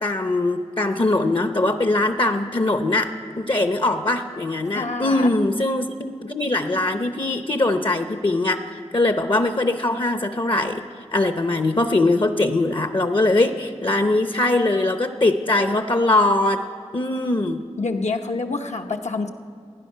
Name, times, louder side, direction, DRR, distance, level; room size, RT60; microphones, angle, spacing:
voice 1, 0.0-10.8 11.1-16.6 16.9-17.6, left 2 dB, 45° left, 8 dB, 0.7 m, -21 dB
voice 2, 4.7-5.4 17.8-19.3, left 3 dB, 70° left, 3 dB, 0.8 m, -27 dB
16.5 x 10.0 x 5.6 m, 2.3 s
wide cardioid pair, 40°, 12 cm